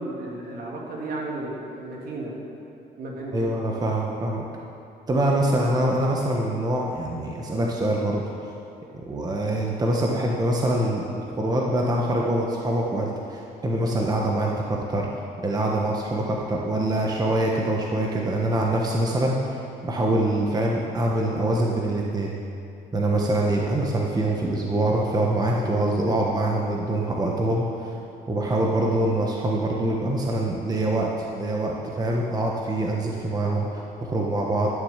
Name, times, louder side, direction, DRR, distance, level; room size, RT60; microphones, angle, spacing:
voice 1, 0.0-2.4 3.0-3.3, right 2 dB, 60° right, -2 dB, 2.9 m, -33 dB
voice 2, 3.3-4.4 5.1-8.2 8.9-15.1 15.4-22.3 22.9-27.9 28.3-34.7, right 1 dB, 20° right, -1 dB, 1.3 m, -24 dB
13.0 x 7.2 x 7.4 m, 2.7 s
cardioid pair, 110°, 17 cm